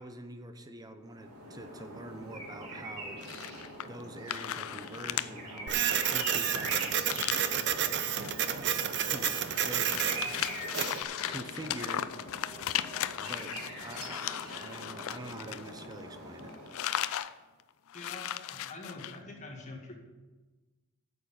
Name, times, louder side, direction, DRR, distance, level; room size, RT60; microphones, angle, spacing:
voice 1, 0.0-3.2 3.8-6.9 9.1-9.3 9.6-10.0 11.3-12.1 13.2-16.5, right 1 dB, 15° right, 7 dB, 0.8 m, -45 dB
sound 1, 1.1-17.0, right 2 dB, 70° right, 3.8 m, -43 dB
sound 2, 3.2-4.0 4.3-5.3 5.6-5.7 6.0-7.6 8.1-8.3 8.7-16.1 16.4-17.3 17.6-17.7 17.9-19.2, left 11 dB, 65° left, 0.4 m, -37 dB
Printer, 5.7-11.0, right 9 dB, 50° right, 0.6 m, -30 dB
voice 2, 17.9-19.9, left 2 dB, 35° left, 0 dB, 1.9 m, -45 dB
9.2 x 6.7 x 7.2 m, 1.2 s
head